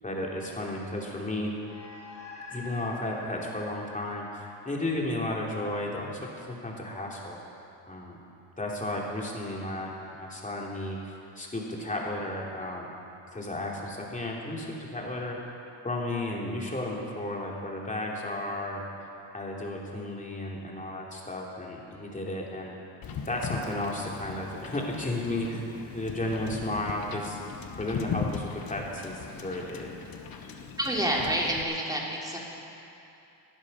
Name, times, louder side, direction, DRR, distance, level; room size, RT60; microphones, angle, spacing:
voice 1, 0.0-1.5 2.5-7.4 7.9-8.2 8.6-12.9 13.3-15.5 15.8-18.8 19.3-22.7 23.2-27.4 27.8-29.9, left 1 dB, 15° left, -2 dB, 3.1 m, -33 dB
sound 1, 1.6-6.3, left 3 dB, 80° left, 2.9 m, -46 dB
Wind / Boat Water vehicle, 23.0-31.6, left 6 dB, 50° left, 1.1 m, -39 dB
voice 2, 30.8-32.4, right 1 dB, 10° right, -3 dB, 3.1 m, -28 dB
18.5 x 11.0 x 5.5 m, 2.8 s
cardioid pair, 95°, 45 cm